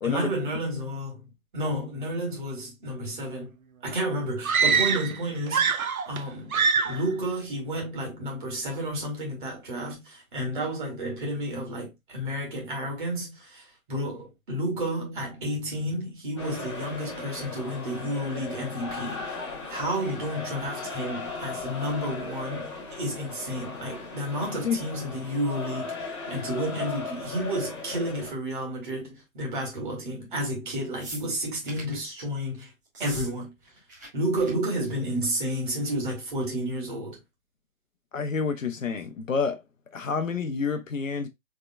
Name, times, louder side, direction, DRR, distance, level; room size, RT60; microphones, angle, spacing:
voice 1, 0.0-1.2 1.5-3.5 3.8-5.8 6.1-19.4 19.7-32.7 33.0-33.5 34.1-37.2, right 1 dB, 35° right, 1.8 m, -31 dB
sound 1, 4.4-5.2 5.5-6.2 6.5-7.1, right 6 dB, 75° right, 0.7 m, -24 dB
sound 2, 16.4-28.3, left 3 dB, 20° left, 1.1 m, -37 dB
sound 3, 31.0-32.0 32.9-33.3 33.6-34.1 34.3-34.5 34.8-35.1 36.1-36.2, right 1 dB, 15° right, 0.7 m, -41 dB
voice 2, 38.1-39.6 39.9-41.3, left 5 dB, 65° left, 0.8 m, -28 dB
3.7 x 3.5 x 2.2 m
figure-of-eight pair, 145°, 42 cm